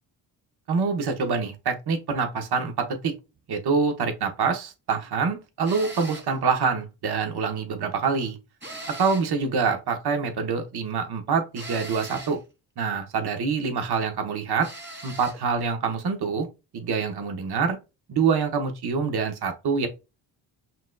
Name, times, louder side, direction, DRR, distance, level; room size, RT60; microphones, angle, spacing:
voice 1, 0.7-3.1 3.5-8.4 9.0-12.4 12.8-14.7 15.0-16.5 16.7-17.8 18.1-19.9, right 5 dB, 55° right, 1.1 m, -25 dB
sound 1, 5.6-6.4 8.6-9.4 11.5-12.4 14.6-15.4, right 1 dB, 25° right, 2.2 m, -40 dB
5.8 x 2.7 x 2.3 m
supercardioid pair, 60°, 47 cm